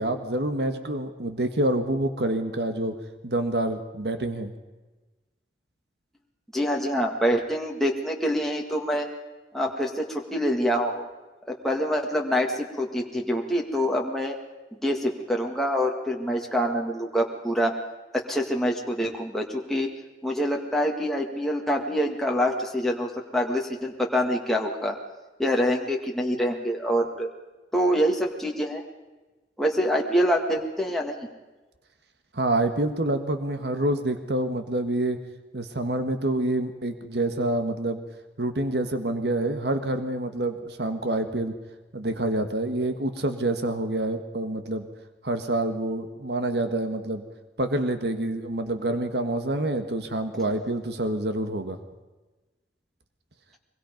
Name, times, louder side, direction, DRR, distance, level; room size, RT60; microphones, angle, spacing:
voice 1, 0.0-2.9 3.2-4.5 32.3-35.2 35.5-38.0 38.4-41.5 41.9-44.8 45.2-47.2 47.6-51.8, right 1 dB, 70° right, 7 dB, 1.6 m, -27 dB
voice 2, 6.5-9.1 9.5-11.1 11.6-14.4 14.8-17.7 18.3-19.9 20.2-24.9 25.4-27.3 27.7-28.8 29.6-31.3, equal, ahead, -1 dB, 1.9 m, -25 dB
23.5 x 22.5 x 5.3 m, 1.2 s
head